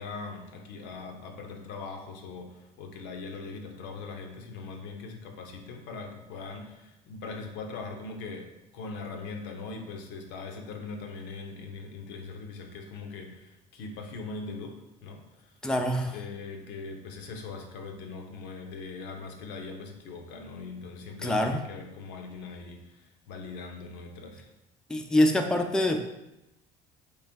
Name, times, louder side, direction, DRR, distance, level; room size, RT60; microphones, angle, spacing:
voice 1, 0.0-15.6 16.1-24.5, left 4 dB, 65° left, 4 dB, 0.6 m, -41 dB
voice 2, 15.6-16.2 21.2-21.6 24.9-26.0, left 1 dB, 5° left, 3 dB, 0.4 m, -25 dB
3.2 x 3.1 x 3.3 m, 0.91 s
hypercardioid pair, 60°, 19 cm